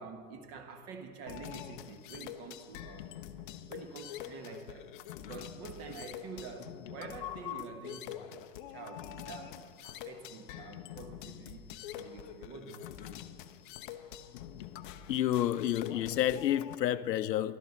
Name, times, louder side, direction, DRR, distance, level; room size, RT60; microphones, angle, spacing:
voice 1, 0.0-3.2 3.7-4.9 5.2-12.9, right 4 dB, 35° right, 1.3 m, -47 dB
sound 1, 1.3-16.8, left 11 dB, 35° left, 0.5 m, -45 dB
voice 2, 15.1-17.6, left 12 dB, 80° left, 0.6 m, -30 dB
14.5 x 12.0 x 4.1 m
hypercardioid pair, 115°, 49 cm